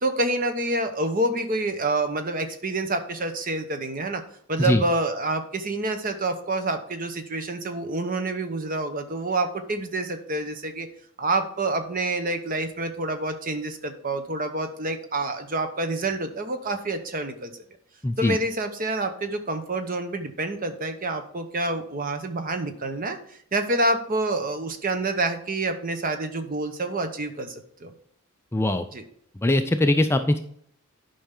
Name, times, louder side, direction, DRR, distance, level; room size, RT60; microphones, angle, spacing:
voice 1, 0.0-4.2 4.5-10.9 11.2-17.6 18.2-27.5 27.8-27.9 28.9-29.0, right 2 dB, 40° right, 7 dB, 0.9 m, -27 dB
voice 2, 18.0-18.4 28.5-28.8 29.4-30.4, left 1 dB, 10° left, 8 dB, 0.4 m, -21 dB
10.0 x 5.5 x 3.7 m, 0.66 s
head